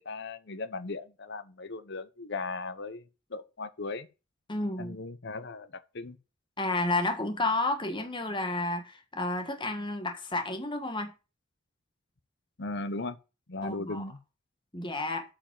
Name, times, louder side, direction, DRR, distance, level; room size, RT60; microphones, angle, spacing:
voice 1, 0.0-3.0 3.3-4.1 4.8-6.2 12.6-13.2 13.5-14.2, left 3 dB, 55° left, 1.0 m, -37 dB
voice 2, 4.5-5.0 6.6-11.1 13.6-14.0 14.7-15.2, left 2 dB, 25° left, 1.6 m, -31 dB
8.5 x 5.4 x 7.6 m
head